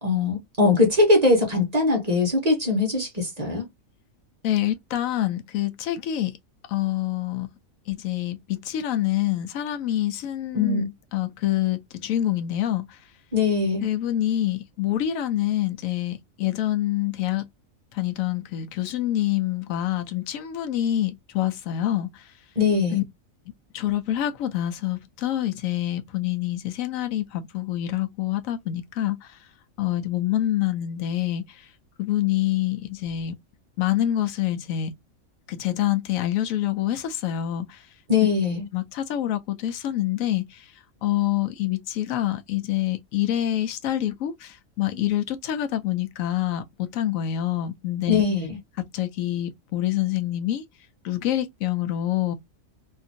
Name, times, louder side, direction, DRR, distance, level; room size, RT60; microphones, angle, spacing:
voice 1, 0.0-3.7 10.5-10.9 13.3-13.9 22.6-23.0 38.1-38.7 48.1-48.6, left 3 dB, 35° right, 1.0 m, -21 dB
voice 2, 4.4-6.3 6.7-7.5 7.9-10.8 11.1-12.9 13.8-17.5 17.9-22.2 22.9-23.0 23.7-29.3 29.8-31.4 32.0-33.4 33.8-34.9 35.5-37.8 38.7-40.6 41.0-48.2 48.9-50.6 51.0-52.3, left 12 dB, 80° left, 1.0 m, -26 dB
2.8 x 2.5 x 2.6 m
omnidirectional pair, 1.4 m